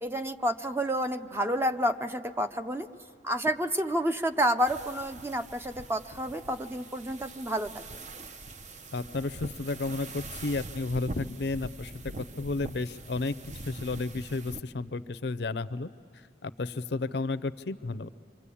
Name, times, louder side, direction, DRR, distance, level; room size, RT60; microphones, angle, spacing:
voice 1, 0.0-2.9 3.2-7.9, equal, 15° right, 9 dB, 0.6 m, -29 dB
sound 1, 4.6-14.6, right 2 dB, 40° right, 0.7 m, -43 dB
voice 2, 8.9-13.3 13.7-15.9 16.4-18.1, left 3 dB, 65° left, 15 dB, 0.6 m, -32 dB
27.5 x 25.0 x 8.5 m, 2.2 s
head